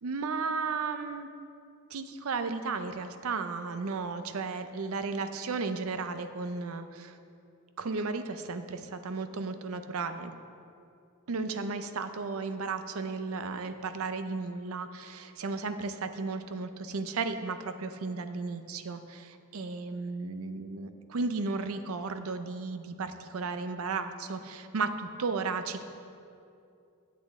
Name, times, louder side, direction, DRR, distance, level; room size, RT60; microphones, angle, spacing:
voice 1, 0.0-1.3 1.9-7.2 7.8-10.3 11.3-25.8, right 4 dB, 80° right, 9 dB, 0.6 m, -34 dB
10.0 x 8.4 x 3.6 m, 2.5 s
head